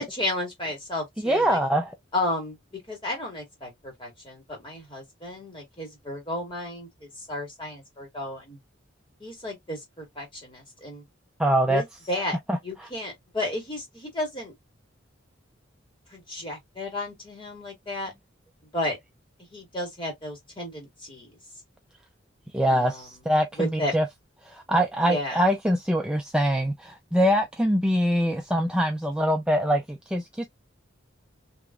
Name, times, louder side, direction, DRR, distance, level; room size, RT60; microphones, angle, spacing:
voice 1, 0.0-1.6 2.1-8.6 9.2-11.0 11.6-12.4 12.6-14.5 16.1-18.1 18.7-19.0 19.5-21.4 22.6-23.1 23.6-23.9 25.0-25.4, left 1 dB, 25° left, 1.8 m, -33 dB
voice 2, 1.2-1.9 11.4-11.8 12.5-12.6 22.5-24.0 24.4-30.5, equal, 5° right, 0.3 m, -23 dB
3.4 x 2.9 x 2.3 m
head